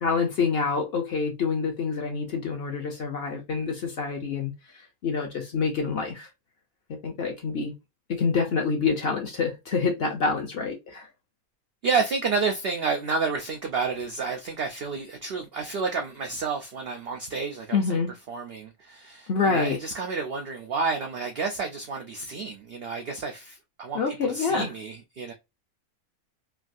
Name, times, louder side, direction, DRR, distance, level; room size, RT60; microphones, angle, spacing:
voice 1, 0.0-4.5 5.0-6.3 7.0-7.7 8.1-11.1 17.7-18.1 19.3-19.8 23.9-24.7, left 5 dB, 55° left, 0.7 m, -26 dB
voice 2, 11.8-17.8 18.3-25.3, right 4 dB, 85° right, 0.5 m, -30 dB
3.4 x 2.3 x 2.5 m
omnidirectional pair, 1.6 m